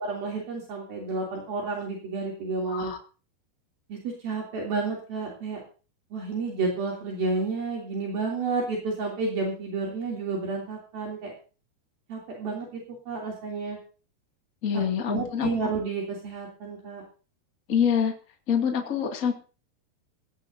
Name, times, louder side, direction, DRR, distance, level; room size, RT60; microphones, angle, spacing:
voice 1, 0.0-2.9 3.9-5.6 6.1-11.3 12.1-12.8 13.1-13.8 15.1-17.0, right 4 dB, 60° right, -2 dB, 4.9 m, -31 dB
voice 2, 14.6-15.7 17.7-18.1 18.5-19.3, left 7 dB, 25° left, 2 dB, 1.9 m, -26 dB
17.5 x 16.5 x 2.8 m, 0.36 s
omnidirectional pair, 4.8 m